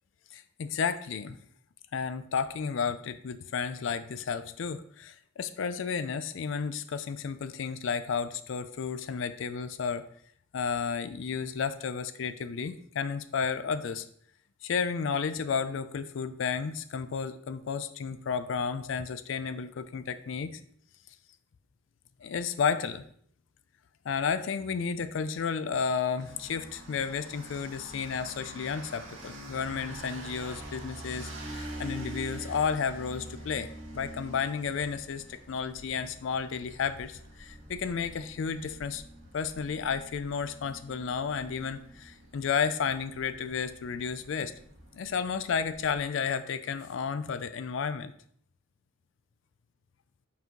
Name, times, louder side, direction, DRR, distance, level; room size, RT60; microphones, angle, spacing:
voice 1, 0.3-1.4 1.9-10.0 10.5-14.1 14.6-20.6 22.2-23.0 24.0-33.7 33.9-39.0 39.3-44.5 44.9-48.1, left 6 dB, 65° left, 12 dB, 0.4 m, -32 dB
sound 1, 26.2-46.0, right 1 dB, 70° right, 1.4 m, -45 dB
5.7 x 4.6 x 3.8 m, 0.64 s
head